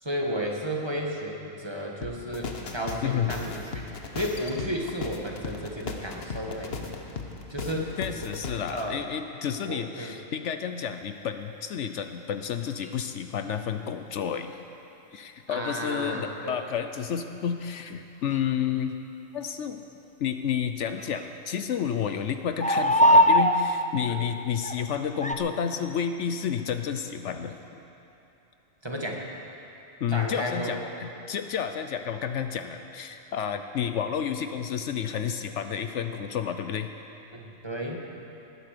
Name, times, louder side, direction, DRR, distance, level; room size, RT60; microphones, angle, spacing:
voice 1, 0.0-3.6 4.1-6.9 7.5-7.9 8.7-8.9 9.7-10.1 15.5-16.6 24.1-24.2 28.8-29.3 30.1-30.9 37.3-38.0, equal, 20° right, -1 dB, 1.6 m, -33 dB
sound 1, 2.0-8.8, left 4 dB, 50° left, 1.3 m, -37 dB
voice 2, 8.0-14.5 15.1-19.0 19.3-19.8 20.2-27.6 30.0-36.9, left 8 dB, 70° left, 8 dB, 0.9 m, -30 dB
sound 2, 12.8-12.9 16.1-16.2 18.3-18.4 21.0-21.2 22.6-23.6 24.6-24.8 25.2-25.3, equal, 10° left, 0.3 m, -20 dB
20.0 x 9.6 x 6.7 m, 2.9 s
omnidirectional pair, 1.3 m